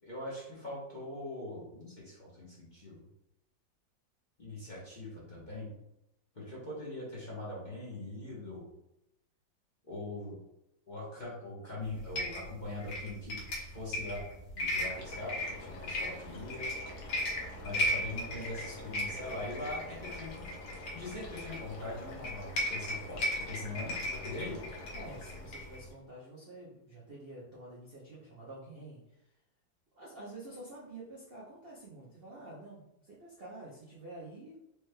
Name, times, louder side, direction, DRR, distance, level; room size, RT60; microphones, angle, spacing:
voice 1, 0.0-3.0 4.4-5.7 6.3-8.6 9.8-10.4 10.9-14.2 14.5-16.7 17.6-24.7, left 2 dB, 30° left, -8 dB, 0.9 m, -42 dB
sound 1, 11.8-25.9, left 1 dB, 90° left, 1.9 m, -37 dB
sound 2, 14.8-26.0, left 2 dB, 60° left, 1.2 m, -48 dB
voice 2, 24.9-29.3 30.0-34.6, right 2 dB, 60° right, -6 dB, 0.6 m, -48 dB
4.8 x 3.1 x 2.2 m, 0.85 s
omnidirectional pair, 2.1 m